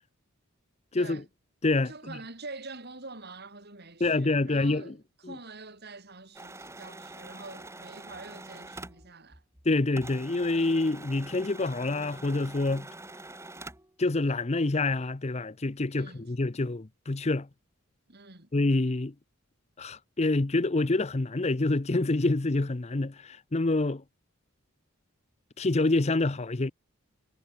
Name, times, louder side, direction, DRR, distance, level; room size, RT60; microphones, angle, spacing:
voice 1, 0.9-1.2 1.6-2.2 4.0-4.9 5.2-5.4 9.6-12.9 14.0-17.5 18.5-19.1 19.8-24.0 25.6-26.7, left 2 dB, 30° left, 0.7 m, -27 dB
voice 2, 1.9-5.0 5.3-9.4 15.9-16.3 18.1-18.5, right 3 dB, 50° right, 5.5 m, -45 dB
sound 1, 6.3-9.7 9.9-13.9, right 2 dB, 15° right, 5.4 m, -45 dB
head